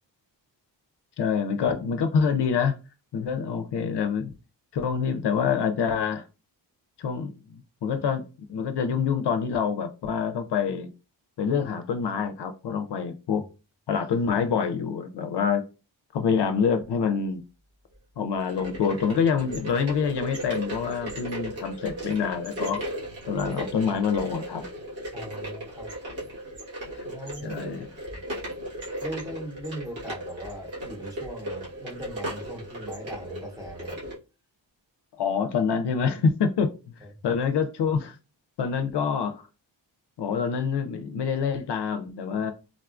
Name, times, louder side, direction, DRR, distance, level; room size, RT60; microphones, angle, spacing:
voice 1, 1.2-2.7 3.1-4.3 4.7-6.3 7.0-8.2 8.5-10.9 11.4-13.4 13.9-15.6 16.1-17.4 18.2-22.8 23.3-24.6 26.9-27.1 27.4-27.9 35.2-36.7 37.2-38.2 38.6-39.4 40.2-42.5, left 6 dB, 65° left, 0.5 m, -26 dB
sound 1, 18.3-34.2, equal, 85° right, 1.4 m, -36 dB
voice 2, 25.1-26.0 27.1-27.6 28.1-28.2 29.0-34.0 37.0-37.2, right 1 dB, 10° right, 0.8 m, -39 dB
3.6 x 2.3 x 2.4 m
wide cardioid pair, 105°, 44 cm